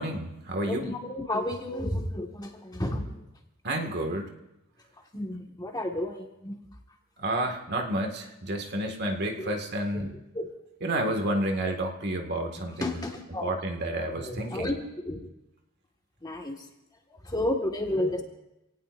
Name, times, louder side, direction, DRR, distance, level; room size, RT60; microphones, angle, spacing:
voice 1, 0.0-0.9 3.6-4.3 7.2-10.1 10.8-13.0 13.4-14.7, right 1 dB, 50° right, 3 dB, 2.0 m, -30 dB
voice 2, 0.6-3.1 5.1-6.6 9.4-9.6 9.9-10.5 12.8-13.6 14.2-14.8 15.0-15.3 16.2-16.7 17.1-18.2, left 1 dB, 20° left, 2 dB, 1.7 m, -32 dB
27.5 x 18.5 x 2.6 m, 0.92 s
head